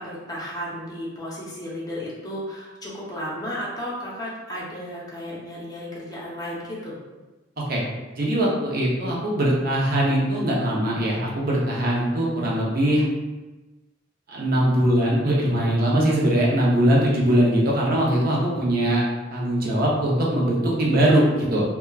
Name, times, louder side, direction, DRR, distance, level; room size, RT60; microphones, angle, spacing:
voice 1, 0.0-7.0, equal, 20° left, -6 dB, 0.6 m, -33 dB
voice 2, 8.2-13.0 14.3-19.1 19.3-21.6, right 1 dB, 50° right, -4 dB, 0.6 m, -21 dB
2.8 x 2.3 x 2.3 m, 1.2 s
head